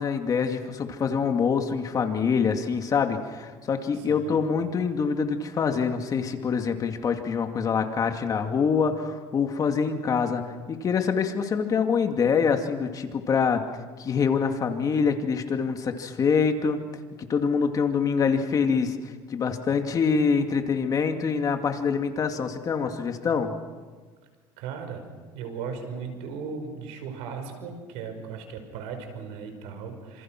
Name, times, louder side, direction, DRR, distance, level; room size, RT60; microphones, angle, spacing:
voice 1, 0.0-10.4 10.7-13.6 14.0-16.8 17.3-19.0 19.3-23.5, left 6 dB, 35° left, 5 dB, 2.4 m, -25 dB
voice 2, 3.9-4.4 24.6-30.2, right 5 dB, 85° right, 6 dB, 5.5 m, -37 dB
27.5 x 27.0 x 6.1 m, 1.4 s
cardioid pair, 130°, 10 cm